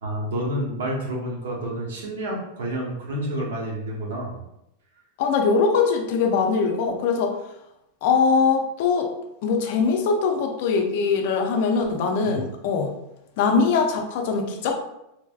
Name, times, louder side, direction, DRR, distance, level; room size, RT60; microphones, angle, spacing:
voice 1, 0.0-4.4 12.2-12.5, right 1 dB, 85° right, -2 dB, 0.9 m, -29 dB
voice 2, 5.2-7.3 8.0-9.1 9.4-12.9 13.4-14.8, left 5 dB, 60° left, 4 dB, 0.5 m, -22 dB
3.2 x 2.5 x 2.3 m, 0.85 s
supercardioid pair, 140°, 0 cm